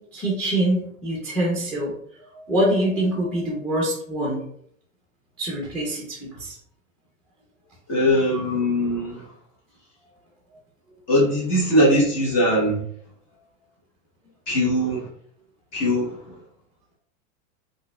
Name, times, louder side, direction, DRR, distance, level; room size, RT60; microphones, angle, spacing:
voice 1, 0.0-1.9 2.3-4.4 5.4-6.5, right 1 dB, 5° left, -2 dB, 0.6 m, -25 dB
voice 2, 7.9-9.2 11.1-12.8 14.5-15.1 15.7-16.2, equal, 35° left, -6 dB, 1.2 m, -20 dB
3.9 x 2.5 x 2.3 m, 0.67 s
hypercardioid pair, 125°, 42 cm